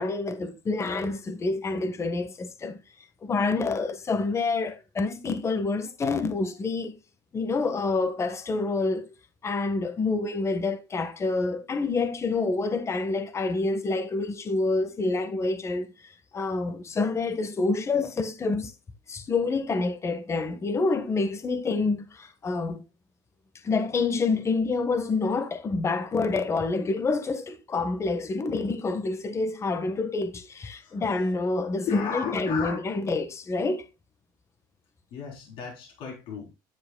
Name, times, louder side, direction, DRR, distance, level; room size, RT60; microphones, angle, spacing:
voice 1, 0.0-2.8 3.2-6.9 7.3-9.1 9.4-18.7 19.1-22.8 23.6-33.8, left 3 dB, 30° left, 1.4 m, -27 dB
voice 2, 30.8-31.3 31.9-32.9 35.1-36.6, left 6 dB, 70° left, 3.9 m, -35 dB
10.5 x 8.8 x 2.3 m
supercardioid pair, 95°, 9 cm